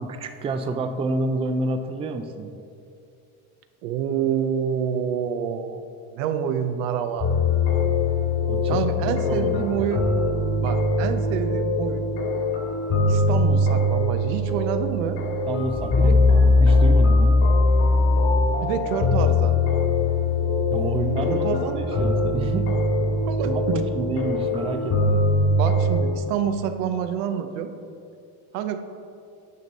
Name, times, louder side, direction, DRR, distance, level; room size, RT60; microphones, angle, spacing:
voice 1, 0.0-2.5 8.5-9.9 15.5-17.4 20.7-22.7 23.0-23.1 23.4-25.2, right 2 dB, 15° right, 7 dB, 0.3 m, -29 dB
voice 2, 3.8-5.8 6.1-7.3 8.7-10.0 10.6-12.1 13.1-15.2 16.0-16.1 18.6-19.6 21.3-21.8 23.2-23.8 25.5-27.7 28.5-28.8, right 8 dB, 85° right, 9 dB, 0.7 m, -27 dB
sound 1, 7.2-26.0, left 2 dB, 45° left, 1.7 m, -21 dB
9.4 x 5.3 x 4.0 m, 2.5 s
cardioid pair, 120°, 38 cm